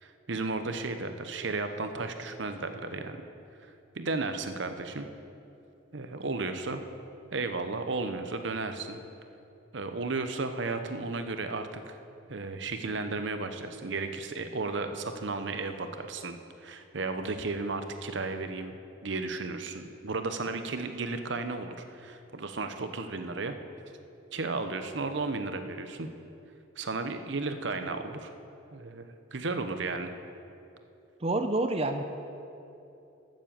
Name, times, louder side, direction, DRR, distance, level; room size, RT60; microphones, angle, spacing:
voice 1, 0.0-3.2 3.9-5.1 5.9-6.8 7.3-9.0 9.7-12.0 12.3-16.4 16.6-23.6 24.3-26.1 26.8-28.3 28.7-30.1, right 3 dB, 60° right, 8 dB, 0.8 m, -34 dB
voice 2, 31.2-32.0, right 2 dB, 30° right, 7 dB, 0.6 m, -28 dB
12.5 x 7.4 x 7.4 m, 2.8 s
head